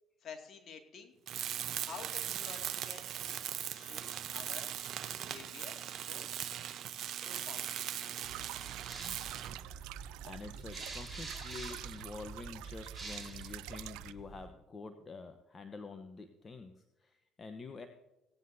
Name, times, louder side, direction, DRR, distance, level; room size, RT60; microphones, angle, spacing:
voice 1, 0.2-1.1 1.8-3.1 3.7-4.7 5.2-6.3 7.2-7.9, left 6 dB, 55° left, 3 dB, 2.3 m, -50 dB
Tools, 1.3-9.6, right 10 dB, 60° right, 0.9 m, -39 dB
sound 1, 8.2-14.1, right 17 dB, 75° right, 0.4 m, -47 dB
sound 2, 8.9-14.5, right 3 dB, 15° right, 4.3 m, -47 dB
voice 2, 10.2-17.9, left 4 dB, 35° left, 7 dB, 1.0 m, -47 dB
17.5 x 9.4 x 2.7 m, 0.99 s
hypercardioid pair, 65°, 0 cm